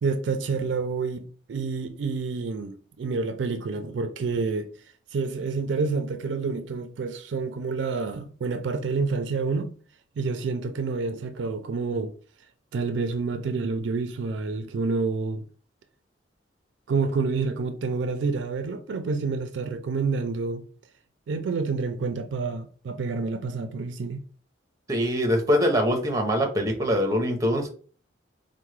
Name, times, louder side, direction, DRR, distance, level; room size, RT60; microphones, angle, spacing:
voice 1, 0.0-4.7 5.1-9.7 10.2-12.1 12.7-15.4 16.9-20.6 21.3-24.2, right 4 dB, 65° right, 0.3 m, -28 dB
voice 2, 24.9-27.7, equal, 20° right, 0.7 m, -23 dB
4.4 x 2.1 x 3.1 m
head